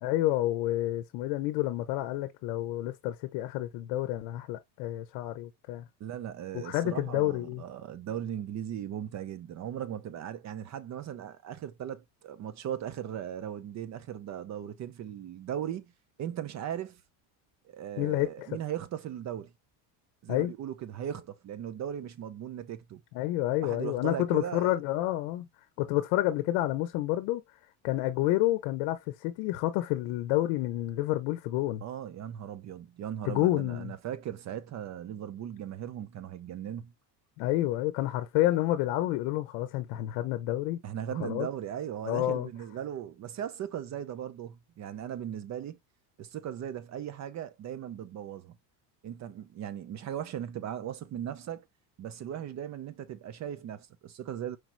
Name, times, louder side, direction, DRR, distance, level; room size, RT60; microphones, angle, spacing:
voice 1, 0.0-5.8 6.5-7.6 18.0-18.6 20.3-20.5 23.1-25.5 25.8-27.4 27.8-31.8 33.3-33.9 37.4-40.8 41.2-41.5 42.1-42.5, left 15 dB, 70° left, 0.7 m, -29 dB
voice 2, 6.0-15.9 16.2-17.0 17.7-19.5 20.2-23.0 23.6-24.7 31.8-36.9 40.8-45.8 46.2-48.6 49.0-51.7 52.0-54.6, right 10 dB, 35° right, 0.5 m, -38 dB
4.7 x 3.0 x 2.5 m
supercardioid pair, 115°, 50 cm